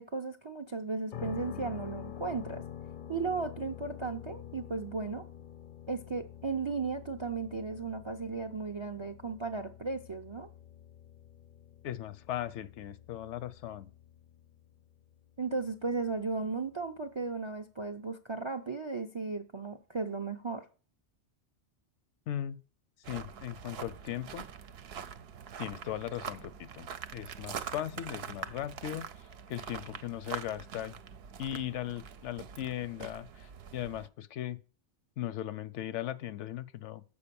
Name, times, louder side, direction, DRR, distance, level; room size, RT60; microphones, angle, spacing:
voice 1, 0.0-2.6 3.1-5.2 5.9-10.5 15.4-20.7, right 4 dB, 45° right, 0.3 m, -35 dB
sound 1, 1.1-17.0, left 9 dB, 55° left, 0.6 m, -48 dB
voice 2, 11.8-13.9 22.3-22.6 23.1-24.4 25.6-31.0 31.4-34.6 35.2-37.0, left 12 dB, 85° left, 0.9 m, -38 dB
sound 2, 23.0-34.1, right 7 dB, 65° right, 0.8 m, -44 dB
7.0 x 5.0 x 6.8 m
omnidirectional pair, 1.2 m